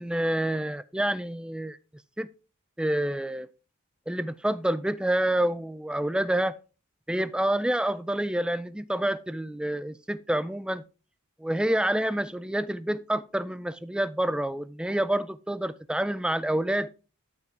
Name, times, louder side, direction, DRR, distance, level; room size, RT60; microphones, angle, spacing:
voice 1, 0.0-1.8 2.2-2.3 2.8-3.5 4.1-6.6 7.1-10.8 11.4-16.9, right 1 dB, 5° right, 0.3 m, -28 dB
13.0 x 5.8 x 3.4 m
head